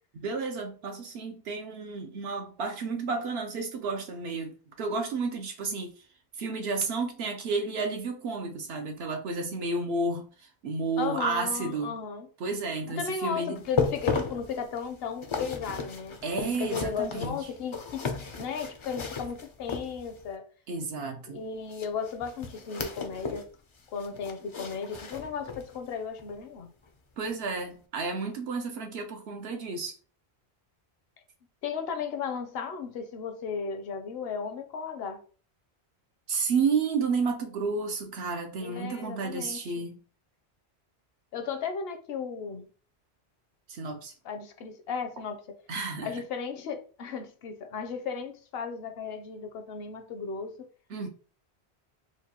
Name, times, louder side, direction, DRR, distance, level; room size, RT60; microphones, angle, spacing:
voice 1, 0.2-5.9 6.4-12.0 12.4-13.6 16.2-17.5 20.7-21.4 27.2-30.0 36.3-40.0 43.7-44.1 45.7-46.1 50.9-51.1, right 4 dB, 75° right, 0.8 m, -31 dB
voice 2, 11.0-12.3 12.9-18.1 18.4-20.4 21.3-23.5 23.9-26.7 31.6-35.2 38.6-39.8 41.3-42.7 44.2-45.6 46.0-50.7, left 6 dB, 70° left, 0.8 m, -35 dB
sound 1, 13.6-20.3 21.7-23.5 23.8-25.8 26.2-26.3 26.9-27.0, left 5 dB, 50° left, 0.3 m, -35 dB
4.5 x 2.2 x 2.8 m
omnidirectional pair, 1.1 m